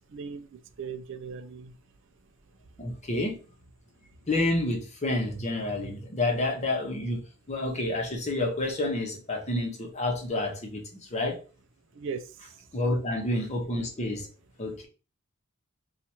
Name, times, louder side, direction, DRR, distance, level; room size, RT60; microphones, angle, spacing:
voice 1, 0.1-1.7 11.9-12.5, right 5 dB, 60° right, 0.4 m, -38 dB
voice 2, 2.8-3.4 4.3-7.2 7.5-11.4 12.7-14.3 14.6-14.9, left 2 dB, 30° left, 0.9 m, -29 dB
2.9 x 2.4 x 4.2 m
head